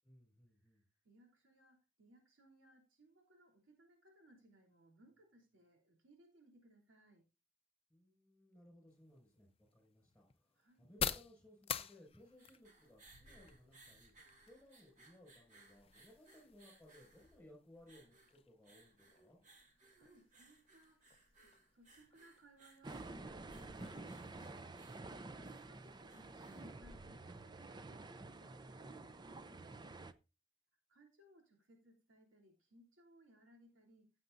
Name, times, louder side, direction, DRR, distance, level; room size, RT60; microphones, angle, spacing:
voice 1, 0.0-0.8 7.9-19.4, left 1 dB, 5° left, 5.9 m, -63 dB
voice 2, 0.7-7.3 10.6-10.9 20.0-24.0 25.5-29.8 30.9-34.1, right 1 dB, 90° right, 3.1 m, -66 dB
sound 1, 8.9-26.5, left 7 dB, 30° left, 0.6 m, -50 dB
sound 2, 12.2-27.5, right 2 dB, 40° right, 2.8 m, -65 dB
sound 3, 22.8-30.1, right 2 dB, 20° right, 0.5 m, -50 dB
15.5 x 7.6 x 2.6 m
head